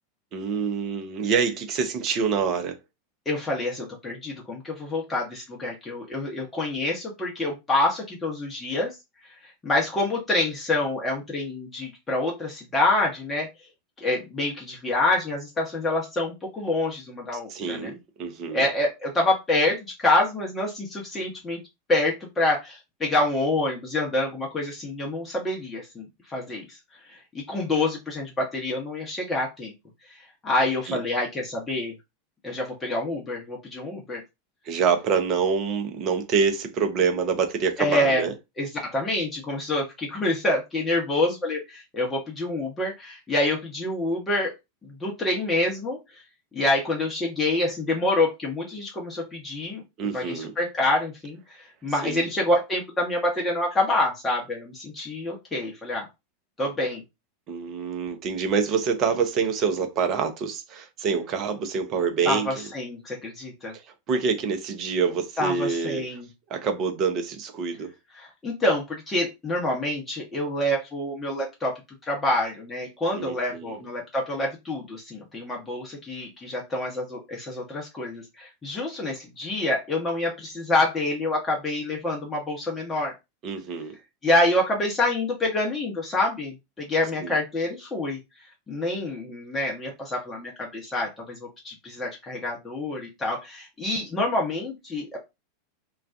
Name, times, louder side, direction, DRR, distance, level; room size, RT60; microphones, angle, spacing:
voice 1, 0.3-2.8 17.5-18.7 30.9-31.0 34.6-38.3 50.0-50.5 52.0-52.3 57.5-62.6 64.1-66.2 66.5-67.9 73.1-73.8 83.4-83.9 87.2-87.4, right 5 dB, 40° right, 0.6 m, -26 dB
voice 2, 3.3-8.9 9.4-13.5 14.0-17.9 18.5-21.6 21.9-26.8 27.1-29.7 30.4-31.9 32.4-34.2 37.8-38.3 38.6-44.5 44.8-46.0 46.5-49.8 50.1-56.1 56.6-57.0 62.2-63.7 65.4-66.3 68.2-71.7 72.1-83.1 84.2-88.2 88.7-95.2, left 2 dB, 15° left, 0.8 m, -27 dB
2.3 x 2.2 x 2.4 m
figure-of-eight pair, 85°, 0 cm